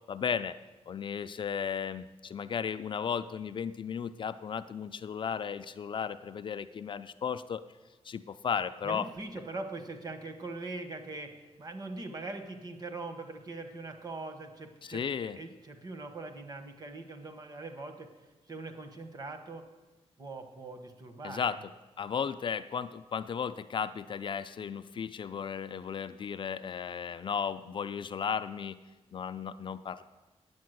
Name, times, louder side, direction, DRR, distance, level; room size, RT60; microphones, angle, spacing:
voice 1, 0.1-0.6 0.9-7.6 8.0-9.1 14.8-15.4 21.2-21.6 22.0-28.8 29.1-30.0, left 7 dB, 45° left, 11 dB, 0.4 m, -35 dB
voice 2, 8.8-18.1 18.5-19.7 20.2-21.6, right 3 dB, 35° right, 6 dB, 1.1 m, -42 dB
9.5 x 8.2 x 7.8 m, 1.2 s
wide cardioid pair, 165°, 11 cm